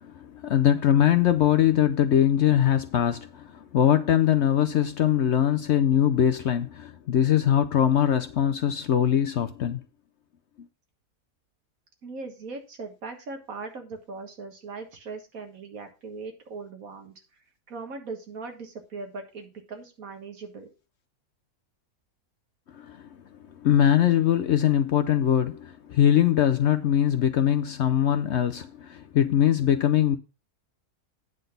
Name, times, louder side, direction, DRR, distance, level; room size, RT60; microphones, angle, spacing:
voice 1, 0.0-9.8 22.7-23.1 23.6-30.2, left 10 dB, 65° left, 0.7 m, -22 dB
voice 2, 12.0-17.1 17.7-20.7, right 4 dB, 70° right, 2.0 m, -39 dB
9.2 x 3.9 x 6.5 m
omnidirectional pair, 1.6 m